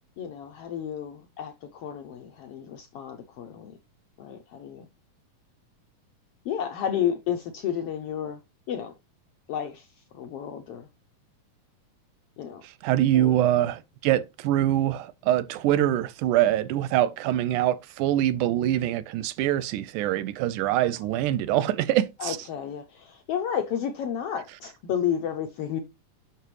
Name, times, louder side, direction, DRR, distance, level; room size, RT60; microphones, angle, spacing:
voice 1, 0.2-3.7 4.2-4.9 6.4-8.4 8.7-8.9 9.5-10.9 12.4-12.6 13.1-13.4 22.2-25.8, left 9 dB, 85° left, 1.3 m, -31 dB
voice 2, 12.6-22.4, right 13 dB, 85° right, 2.1 m, -24 dB
9.1 x 6.1 x 3.2 m
omnidirectional pair, 3.6 m